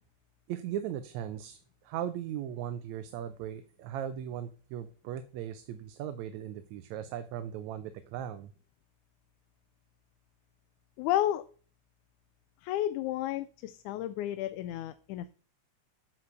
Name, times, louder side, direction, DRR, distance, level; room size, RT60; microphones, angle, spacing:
voice 1, 0.5-8.5, right 10 dB, 80° right, 11 dB, 1.9 m, -38 dB
voice 2, 11.0-11.4 12.6-15.3, left 13 dB, 90° left, 12 dB, 2.0 m, -32 dB
9.7 x 4.5 x 6.6 m, 0.39 s
omnidirectional pair, 3.4 m